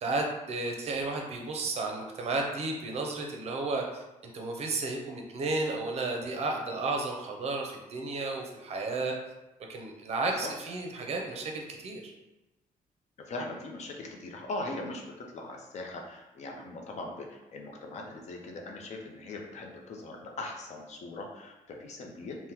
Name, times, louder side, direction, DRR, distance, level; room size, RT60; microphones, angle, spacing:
voice 1, 0.0-9.1 9.7-12.1, right 3 dB, 45° right, 1 dB, 0.6 m, -33 dB
voice 2, 13.3-22.4, left 2 dB, 50° left, 1 dB, 0.6 m, -40 dB
3.5 x 2.1 x 2.8 m, 1.0 s
cardioid pair, 140°, 15 cm